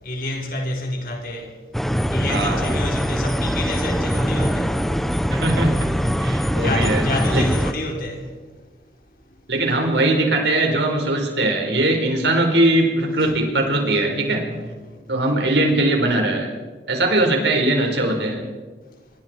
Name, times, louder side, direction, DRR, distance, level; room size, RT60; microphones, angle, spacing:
voice 1, 0.0-1.6 2.1-4.9 6.6-8.3 14.4-15.2, left 1 dB, 55° left, 4.1 m, -29 dB
sound 1, 1.7-7.7, equal, ahead, 0.9 m, -22 dB
voice 2, 2.3-2.8 5.3-5.9 6.2-7.4 9.5-14.4 15.1-16.5 16.9-18.4, right 1 dB, 85° right, 4.8 m, -20 dB
26.0 x 22.5 x 4.6 m
head